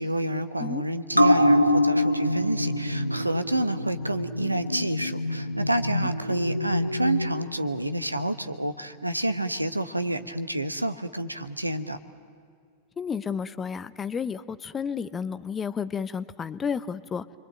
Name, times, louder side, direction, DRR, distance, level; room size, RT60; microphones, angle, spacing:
voice 1, 0.0-12.0, right 1 dB, 85° right, 11 dB, 1.1 m, -29 dB
sound 1, 1.1-8.0 8.4-8.5, left 1 dB, 90° left, 1.0 m, -25 dB
voice 2, 13.0-17.3, left 6 dB, 20° left, 15 dB, 0.8 m, -31 dB
29.0 x 23.0 x 8.9 m, 2.2 s
figure-of-eight pair, 90°, 0 cm